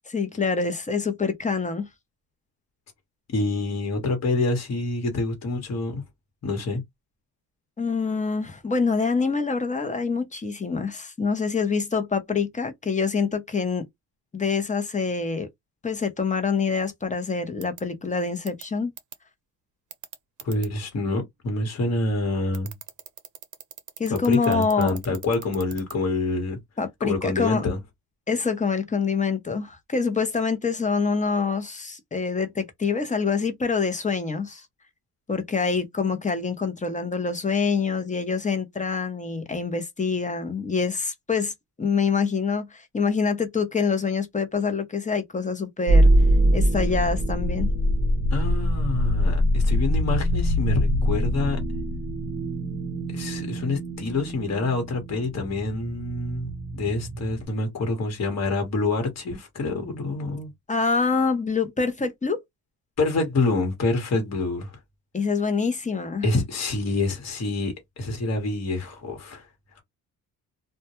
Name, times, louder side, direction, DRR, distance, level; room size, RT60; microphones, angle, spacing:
voice 1, 0.1-1.9 7.8-13.9 14.3-15.5 15.8-18.9 24.0-24.9 26.8-27.6 28.3-34.6 35.3-46.1 46.5-47.7 60.7-62.4 65.1-66.2, left 5 dB, 20° left, 0.7 m, -26 dB
voice 2, 3.3-6.0 6.4-6.8 20.4-22.7 24.1-26.6 27.0-27.8 48.3-51.6 53.1-60.5 63.0-64.8 66.2-69.5, left 2 dB, 45° left, 1.2 m, -27 dB
sound 1, 17.6-17.8 18.5-18.6 19.0-19.2 19.9-20.7 22.5-25.9, right 10 dB, 55° right, 0.6 m, -40 dB
sound 2, 45.9-57.5, equal, 15° right, 0.7 m, -23 dB
2.2 x 2.1 x 2.9 m
cardioid pair, 85°, 38 cm